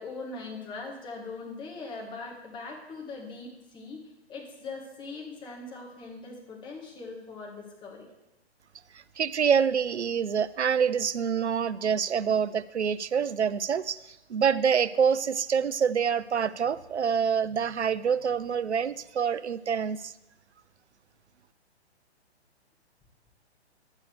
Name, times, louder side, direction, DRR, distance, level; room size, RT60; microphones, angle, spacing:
voice 1, 0.0-4.0 4.3-8.1, left 3 dB, 15° left, -1 dB, 1.5 m, -41 dB
voice 2, 9.2-20.1, right 7 dB, 90° right, 16 dB, 0.5 m, -26 dB
11.0 x 8.2 x 3.3 m, 0.95 s
figure-of-eight pair, 125°, 33 cm